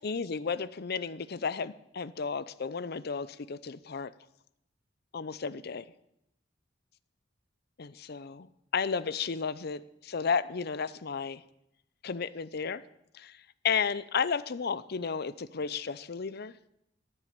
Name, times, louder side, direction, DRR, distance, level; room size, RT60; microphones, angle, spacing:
voice 1, 0.0-4.1 5.1-5.8 7.8-8.5 8.7-11.4 12.0-12.8 13.1-13.4 13.6-16.5, left 5 dB, 55° left, 16 dB, 0.6 m, -33 dB
13.5 x 9.9 x 8.9 m, 0.80 s
head